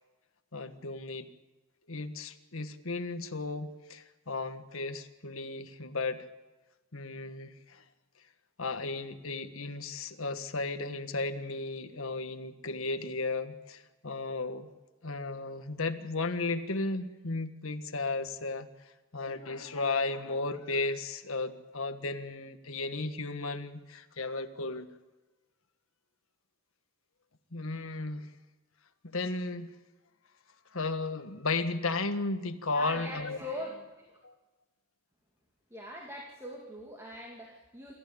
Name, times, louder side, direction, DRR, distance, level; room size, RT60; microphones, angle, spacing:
voice 1, 0.5-1.3 1.9-6.3 6.9-7.8 8.6-14.7 15.0-18.7 19.1-24.9 27.5-28.3 29.0-29.7 30.7-33.4 34.2-34.3, left 3 dB, 75° left, 8 dB, 1.6 m, -34 dB
voice 2, 32.7-34.1 35.7-37.9, left 1 dB, 15° right, -1 dB, 2.6 m, -42 dB
27.0 x 14.5 x 8.7 m, 1.2 s
head